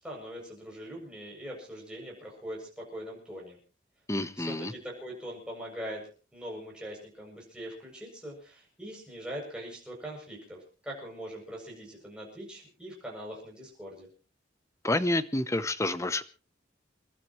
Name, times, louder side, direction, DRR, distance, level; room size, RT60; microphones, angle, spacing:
voice 1, 0.0-3.6 4.4-14.1, equal, 5° right, -2 dB, 7.7 m, -42 dB
voice 2, 4.1-4.7 14.8-16.2, left 1 dB, 15° left, 14 dB, 0.8 m, -29 dB
29.0 x 12.5 x 3.2 m, 0.36 s
head